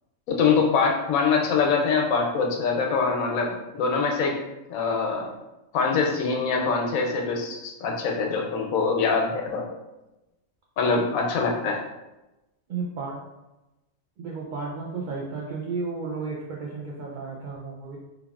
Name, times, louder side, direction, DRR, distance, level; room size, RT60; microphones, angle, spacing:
voice 1, 0.3-4.4 4.7-5.3 5.7-9.7 10.8-11.8, left 5 dB, 85° left, 1 dB, 1.0 m, -24 dB
voice 2, 12.7-13.2 14.2-18.0, right 4 dB, 90° right, -3 dB, 0.4 m, -33 dB
3.2 x 2.3 x 2.3 m, 0.98 s
omnidirectional pair, 1.4 m